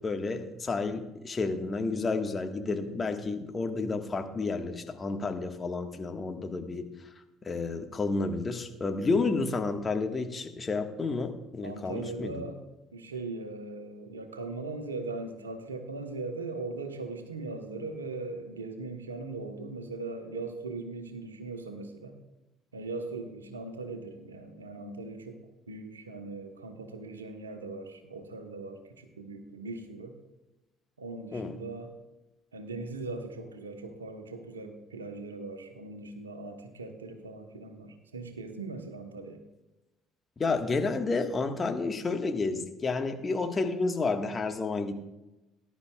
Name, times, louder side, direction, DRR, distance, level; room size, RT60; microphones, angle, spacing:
voice 1, 0.0-6.8 7.4-12.4 31.3-31.5 40.4-45.0, left 3 dB, 30° left, 5 dB, 1.6 m, -31 dB
voice 2, 11.6-12.6 12.9-22.2 22.7-25.4 25.7-30.1 31.0-31.9 32.5-39.4, right 3 dB, 85° right, 7 dB, 1.2 m, -39 dB
19.5 x 11.0 x 2.4 m, 1.0 s
figure-of-eight pair, 55°, 0 cm